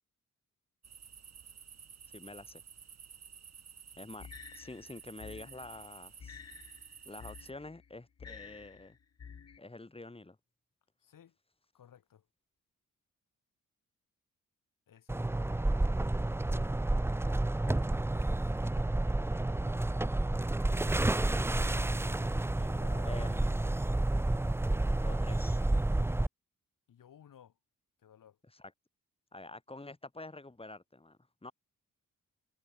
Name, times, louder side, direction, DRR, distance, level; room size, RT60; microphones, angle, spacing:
sound 1, 0.8-7.5, right 7 dB, 50° right, 3.3 m, -53 dB
voice 1, 2.1-2.6 4.0-4.3 4.5-6.4 7.1-9.0 9.6-10.4 23.0-23.6 25.0-25.6 28.5-28.7 29.3-31.5, left 2 dB, 15° left, 5.3 m, -47 dB
sound 2, 4.2-9.6, left 6 dB, 50° left, 3.5 m, -51 dB
voice 2, 11.0-11.3 11.7-12.2 14.9-15.5 22.4-23.2 26.9-27.5 28.0-28.4, left 9 dB, 75° left, 2.9 m, -57 dB
sound 3, 15.1-26.3, right 2 dB, 10° right, 0.5 m, -30 dB
wide cardioid pair, 130°, 32 cm